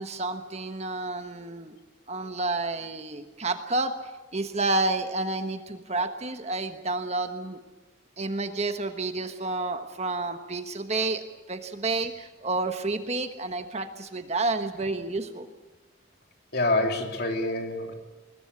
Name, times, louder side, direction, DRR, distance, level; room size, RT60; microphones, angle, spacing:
voice 1, 0.0-1.8 2.1-3.9 4.3-7.6 8.2-15.5, right 2 dB, 30° right, 8 dB, 1.3 m, -30 dB
voice 2, 16.5-17.9, left 2 dB, 50° left, 3 dB, 3.3 m, -26 dB
21.0 x 20.5 x 8.4 m, 1.2 s
head